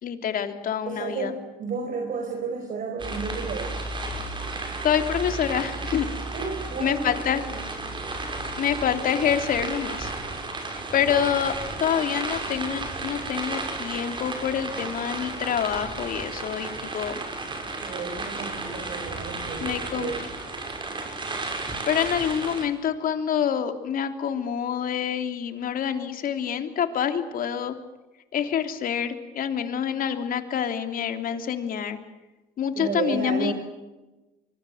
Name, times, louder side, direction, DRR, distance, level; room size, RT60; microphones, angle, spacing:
voice 1, 0.0-1.3 4.8-6.1 6.8-7.4 8.6-10.1 10.7-11.5 11.8-17.2 19.6-20.1 21.8-27.7 28.3-32.0 32.6-33.5, left 8 dB, 55° left, 8 dB, 3.2 m, -27 dB
voice 2, 0.8-3.8 6.3-7.1 7.5-7.7 17.8-20.3 32.7-33.5, right 4 dB, 50° right, 4 dB, 4.6 m, -32 dB
sound 1, 3.0-22.7, right 3 dB, 30° right, 6.4 m, -33 dB
25.5 x 23.0 x 7.9 m, 1.1 s
cardioid pair, 110°, 17 cm